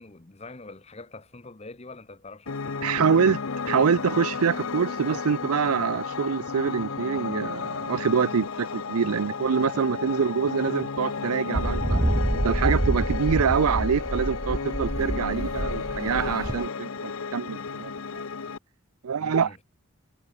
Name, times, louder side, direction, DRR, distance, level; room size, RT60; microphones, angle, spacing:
voice 1, 0.0-3.2 19.2-19.6, left 3 dB, 30° left, 0.9 m, -44 dB
Piano, 2.5-18.6, left 5 dB, 70° left, 0.8 m, -33 dB
voice 2, 2.8-3.4 3.7-12.0 12.3-18.2 19.0-19.5, right 6 dB, 85° right, 0.5 m, -25 dB
sound 1, 11.5-16.7, right 1 dB, 15° right, 0.5 m, -27 dB
head